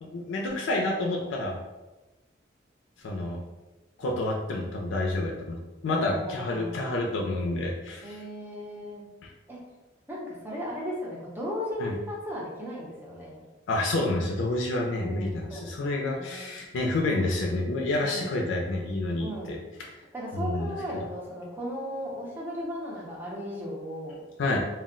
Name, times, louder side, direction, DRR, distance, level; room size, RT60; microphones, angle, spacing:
voice 1, 0.0-1.6 3.0-3.4 4.0-5.6 5.8-8.2 11.8-11.9 13.7-19.6 20.3-20.7 24.4-24.6, left 2 dB, 80° left, -1 dB, 0.4 m, -29 dB
voice 2, 5.9-6.8 8.0-9.0 9.5-9.6 10.1-13.4 15.0-16.5 18.0-18.5 19.2-19.6 20.1-24.2, equal, 10° right, -5 dB, 0.7 m, -36 dB
2.3 x 2.0 x 3.7 m, 1.1 s
head